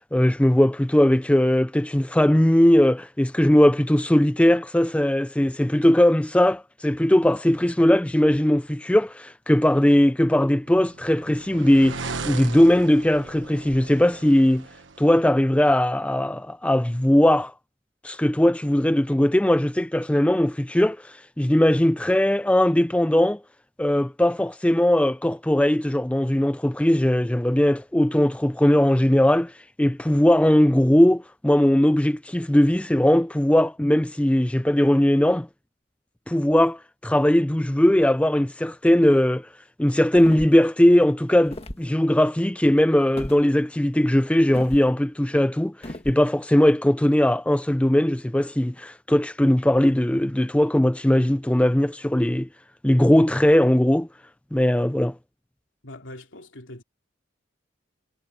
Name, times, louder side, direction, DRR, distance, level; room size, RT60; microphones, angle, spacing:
voice 1, 0.1-14.7 15.0-17.5 18.0-23.4 23.8-29.5 29.8-35.5 36.3-39.5 39.8-52.5 52.8-54.1 54.5-55.1, left 1 dB, 5° left, 0.4 m, -19 dB
sound 1, 10.5-15.2, right 4 dB, 75° right, 1.3 m, -37 dB
sound 2, 40.1-40.7 41.4-41.9 43.2-43.4 44.5-44.9 45.8-46.2, left 1 dB, 30° left, 1.7 m, -36 dB
voice 2, 55.8-56.8, left 1 dB, 75° left, 3.1 m, -42 dB
head